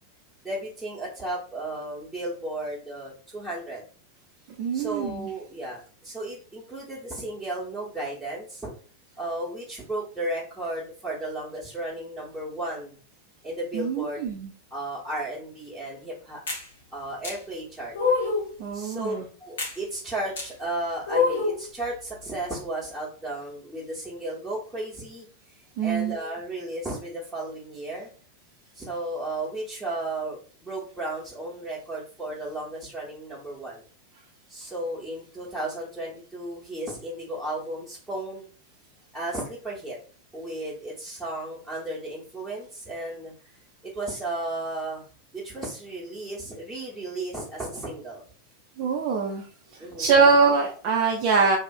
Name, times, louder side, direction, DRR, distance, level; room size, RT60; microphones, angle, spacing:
voice 1, 0.4-3.8 4.7-8.7 9.2-12.9 13.4-14.2 14.7-16.4 16.9-17.9 18.7-25.3 25.8-28.1 28.7-33.8 34.5-38.5 39.1-40.0 40.3-43.3 43.8-45.1 45.3-48.2 49.8-50.3, right 1 dB, 5° right, -8 dB, 0.9 m, -34 dB
voice 2, 4.6-5.3 13.7-14.5 18.6-19.3 25.8-26.2 48.8-49.5 50.0-51.6, right 5 dB, 45° right, 0 dB, 0.4 m, -23 dB
sound 1, 16.5-16.7 17.2-17.4 17.9-18.5 19.6-19.8 20.4-20.5 21.1-21.6, left 4 dB, 65° left, 0.8 m, -25 dB
2.7 x 2.4 x 2.3 m, 0.41 s
figure-of-eight pair, 90°, 0 cm